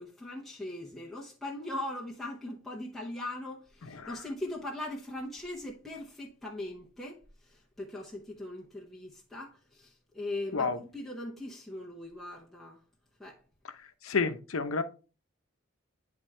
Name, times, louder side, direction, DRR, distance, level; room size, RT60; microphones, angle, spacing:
voice 1, 0.0-7.2 7.5-12.8 13.2-13.4, left 1 dB, ahead, 0.8 m, -40 dB
voice 2, 3.8-4.2 10.5-10.8 13.6-13.7 14.0-14.8, left 4 dB, 75° left, 0.7 m, -30 dB
9.6 x 3.5 x 3.2 m
head